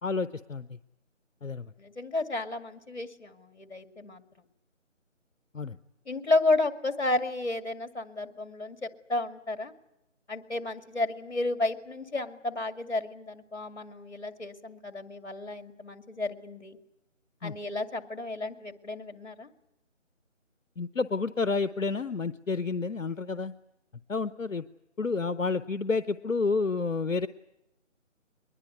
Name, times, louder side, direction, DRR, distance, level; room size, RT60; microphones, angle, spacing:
voice 1, 0.0-0.8 1.4-1.7 5.5-5.8 17.4-17.5 20.8-23.5 24.1-24.6 25.0-27.3, left 4 dB, 80° left, 14 dB, 0.9 m, -30 dB
voice 2, 1.8-4.2 6.1-9.7 10.3-16.8 17.4-19.5, left 2 dB, 60° left, 8 dB, 2.3 m, -32 dB
22.5 x 21.0 x 9.4 m, 0.89 s
figure-of-eight pair, 160°, 39 cm